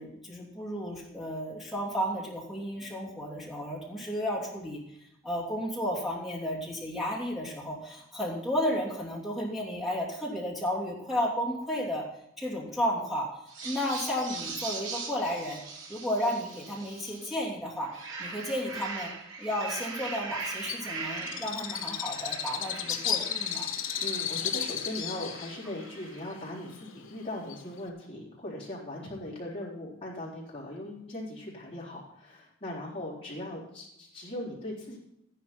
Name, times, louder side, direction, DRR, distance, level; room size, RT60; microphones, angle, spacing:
voice 1, 0.0-4.8 5.2-12.0 12.4-13.3 13.6-15.6 15.9-17.9 18.2-19.1 19.4-23.7, equal, ahead, -5 dB, 3.0 m, -33 dB
sound 1, 13.5-17.4 17.8-26.5, right 4 dB, 75° right, 2.7 m, -41 dB
Bird, 20.7-27.9, left 9 dB, 75° left, 1.0 m, -34 dB
voice 2, 23.9-35.0, left 1 dB, 30° left, -6 dB, 4.0 m, -39 dB
13.5 x 11.0 x 4.4 m, 0.80 s
head